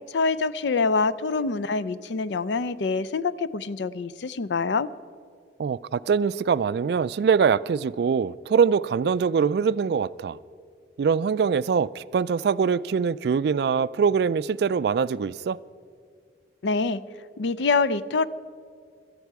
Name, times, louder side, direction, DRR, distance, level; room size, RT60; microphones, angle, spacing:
voice 1, 0.1-4.9 16.6-17.0 17.4-18.3, left 4 dB, 75° left, 0.5 m, -25 dB
voice 2, 5.6-10.4 11.0-15.6, right 6 dB, 60° right, 0.3 m, -23 dB
18.0 x 13.0 x 4.7 m
head